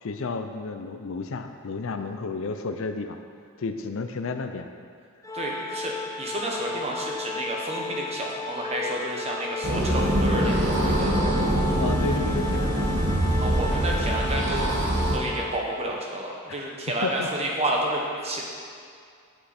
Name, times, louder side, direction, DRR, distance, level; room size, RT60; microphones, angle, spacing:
voice 1, 0.0-3.2 3.6-4.7 11.7-12.9 17.0-17.3, left 3 dB, 65° left, 7 dB, 0.5 m, -31 dB
Organ, 5.2-16.1, left 3 dB, 15° left, 0.4 m, -35 dB
voice 2, 5.3-11.2 13.4-14.7 15.1-18.4, right 1 dB, 30° right, -2 dB, 1.3 m, -30 dB
sound 1, 9.6-15.2, right 1 dB, 55° right, 1.3 m, -24 dB
8.2 x 8.1 x 4.3 m, 2.3 s
head